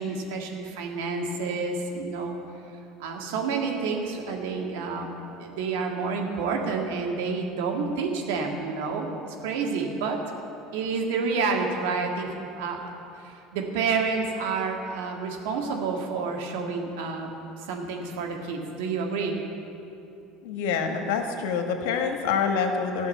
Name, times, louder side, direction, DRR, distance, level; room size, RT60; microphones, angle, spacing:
voice 1, 0.0-2.4 3.0-10.2 10.7-17.3 17.6-19.4, right 4 dB, 75° right, 1 dB, 1.8 m, -29 dB
voice 2, 20.4-23.1, left 6 dB, 70° left, 4 dB, 1.4 m, -26 dB
13.0 x 6.4 x 9.3 m, 2.7 s
hypercardioid pair, 75°, 0 cm